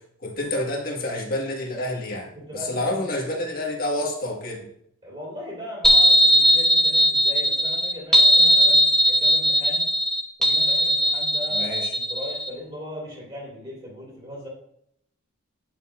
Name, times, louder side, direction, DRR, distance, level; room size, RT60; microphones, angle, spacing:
voice 1, 0.2-4.7 11.5-11.9, left 1 dB, 40° left, 0 dB, 1.5 m, -28 dB
voice 2, 2.4-3.1 5.0-9.9 10.4-14.5, left 1 dB, 25° right, -6 dB, 3.0 m, -38 dB
sound 1, 5.8-12.5, equal, ahead, 0.8 m, -18 dB
9.2 x 6.6 x 2.5 m, 0.71 s
head